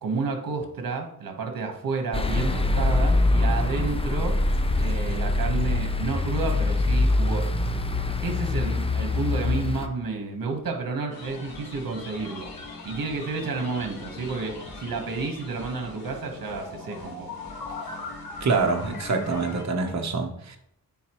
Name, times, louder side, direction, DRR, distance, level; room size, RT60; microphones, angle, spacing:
voice 1, 0.0-4.4 4.8-7.7 8.2-12.5 12.8-17.3, right 4 dB, 70° right, 1.3 m, -31 dB
sound 1, 2.1-9.9, left 2 dB, 15° left, 0.6 m, -24 dB
sound 2, 11.1-19.6, left 3 dB, 90° left, 1.6 m, -40 dB
voice 2, 18.4-20.6, right 4 dB, 50° right, 1.0 m, -25 dB
9.4 x 4.2 x 3.0 m
wide cardioid pair, 95°, 35 cm